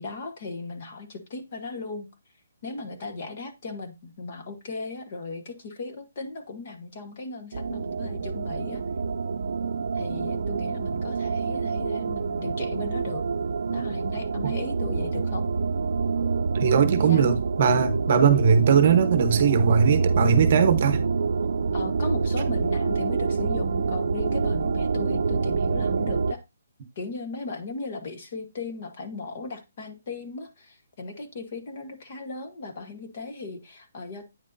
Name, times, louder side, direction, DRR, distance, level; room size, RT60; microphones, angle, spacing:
voice 1, 0.0-2.1 2.6-8.8 9.9-13.2 13.7-15.5 17.0-17.3 21.7-26.4 27.0-34.3, left 3 dB, 35° left, 1.1 m, -37 dB
sound 1, 7.5-26.3, right 5 dB, 55° right, 0.5 m, -26 dB
voice 2, 16.5-21.0, right 6 dB, 35° right, 1.0 m, -20 dB
9.1 x 6.2 x 2.6 m
hypercardioid pair, 175°, 0 cm